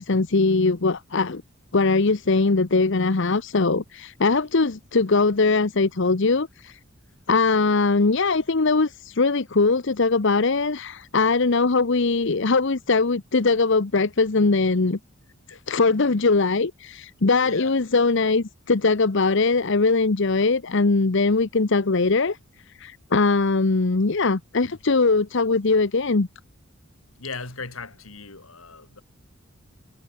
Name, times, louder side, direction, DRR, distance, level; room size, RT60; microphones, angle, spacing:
voice 1, 0.0-1.4 1.7-6.8 7.3-15.0 15.7-22.4 22.7-26.3, left 3 dB, 60° left, 0.9 m, -21 dB
voice 2, 17.4-17.8 27.2-29.0, left 4 dB, 85° left, 3.8 m, -37 dB
head